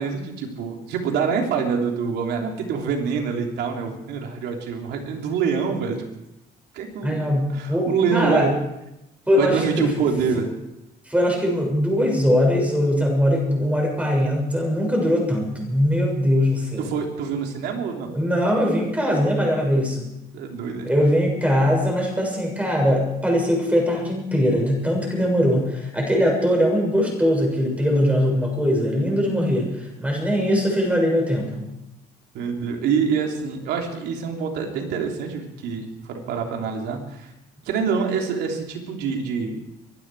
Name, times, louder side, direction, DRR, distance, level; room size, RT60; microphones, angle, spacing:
voice 1, 0.0-6.1 6.7-7.2 7.5-8.6 9.3-10.5 16.8-18.1 20.3-20.9 32.3-37.3 37.6-39.6, right 6 dB, 80° right, 2 dB, 3.3 m, -25 dB
voice 2, 7.0-8.5 9.3-9.9 11.0-16.9 18.1-20.1 20.8-31.7, equal, 10° right, 0 dB, 6.8 m, -21 dB
24.0 x 12.0 x 4.8 m, 0.87 s
cardioid pair, 110°, 17 cm